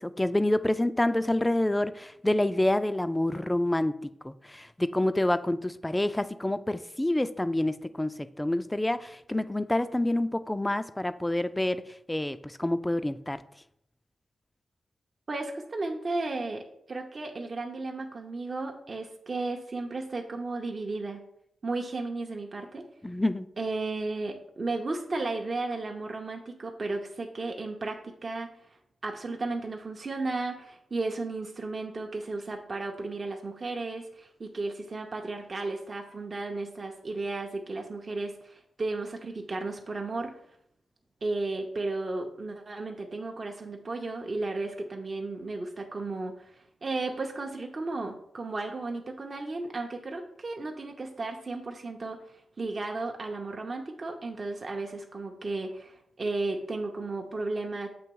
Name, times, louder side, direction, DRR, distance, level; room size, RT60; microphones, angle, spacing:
voice 1, 0.0-3.9 4.2-13.4 23.0-23.5, left 1 dB, 15° left, 12 dB, 0.3 m, -27 dB
voice 2, 15.3-21.2 21.6-22.8 23.6-28.5 29.0-40.3 41.2-57.9, right 3 dB, 45° right, 2 dB, 0.6 m, -34 dB
7.0 x 3.0 x 4.6 m, 0.74 s
cardioid pair, 60°, 0 cm